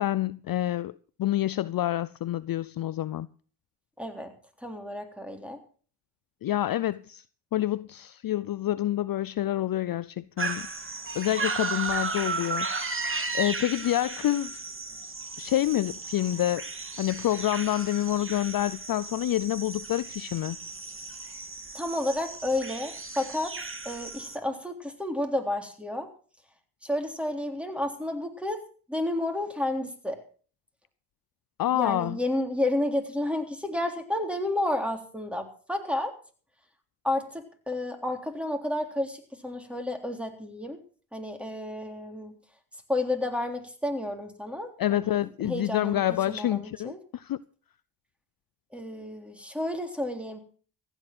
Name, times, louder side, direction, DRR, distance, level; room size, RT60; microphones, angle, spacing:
voice 1, 0.0-3.3 6.4-7.2 7.5-12.7 13.3-14.5 15.4-16.7 17.0-20.6 31.6-32.2 44.8-47.4, left 13 dB, 45° left, 0.6 m, -28 dB
voice 2, 4.0-4.3 4.6-5.6 21.7-23.5 23.8-26.1 26.8-28.6 28.9-30.2 31.7-36.1 37.0-40.8 41.1-42.4 42.9-47.0 48.7-50.4, left 1 dB, ahead, 3.6 m, -31 dB
sound 1, 10.4-24.4, right 4 dB, 25° right, 2.1 m, -35 dB
15.0 x 10.0 x 6.1 m
supercardioid pair, 55°, 48 cm